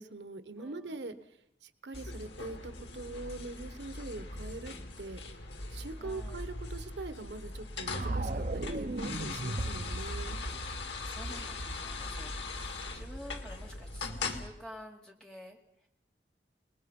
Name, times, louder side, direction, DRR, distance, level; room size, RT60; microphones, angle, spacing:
voice 1, 0.0-10.4, right 3 dB, 80° right, 11 dB, 1.3 m, -43 dB
voice 2, 0.6-1.0 6.0-6.5 9.3-9.6 10.2-10.4 10.9-15.6, equal, 5° left, 0 dB, 2.9 m, -50 dB
sound 1, 1.9-14.5, left 3 dB, 85° left, 2.2 m, -41 dB
sound 2, 7.9-13.9, right 2 dB, 45° right, 0.8 m, -38 dB
29.0 x 20.5 x 5.4 m, 0.79 s
head